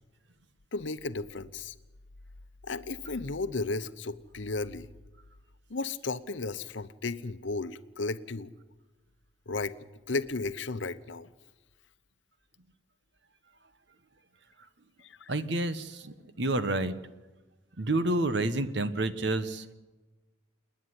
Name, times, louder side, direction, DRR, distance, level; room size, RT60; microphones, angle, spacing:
voice 1, 0.7-1.7 2.6-4.9 5.7-8.5 9.5-9.8 10.1-11.3 15.0-15.3, left 3 dB, 70° left, 13 dB, 0.9 m, -34 dB
voice 2, 15.3-15.9 16.4-16.9 17.8-19.7, right 2 dB, 60° right, 12 dB, 1.2 m, -28 dB
28.0 x 10.0 x 9.9 m, 1.2 s
head